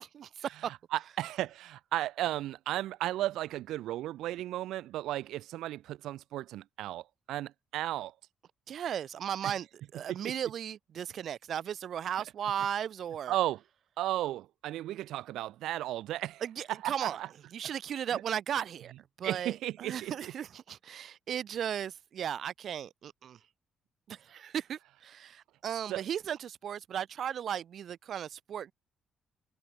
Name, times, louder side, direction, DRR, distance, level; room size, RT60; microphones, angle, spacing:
voice 1, 0.0-0.7 8.7-9.7 9.9-13.3 16.4-17.2 17.5-18.9 19.2-23.4 24.1-28.7, right 9 dB, 65° right, 1.0 m, -36 dB
voice 2, 0.6-8.1 9.4-9.5 10.1-10.3 13.3-13.6 14.0-16.4 16.7-17.3 18.1-18.2 19.2-20.3 25.9-26.0, right 14 dB, 85° right, 1.2 m, -35 dB
cardioid pair, 90°, 0 cm